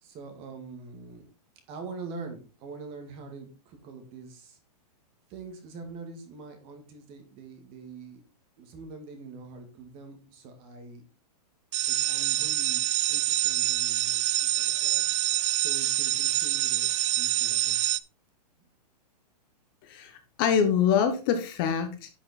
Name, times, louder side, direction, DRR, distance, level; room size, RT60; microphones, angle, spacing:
voice 1, 0.0-1.3 1.7-4.6 5.3-8.2 8.6-11.1 11.9-12.8 13.1-15.1 15.5-17.9, right 4 dB, 25° right, 5 dB, 2.2 m, -44 dB
sound 1, 11.7-18.0, right 14 dB, 45° right, 0.5 m, -26 dB
voice 2, 19.8-22.1, left 7 dB, 35° left, 7 dB, 1.3 m, -25 dB
11.0 x 5.8 x 4.3 m, 0.34 s
hypercardioid pair, 165°, 21 cm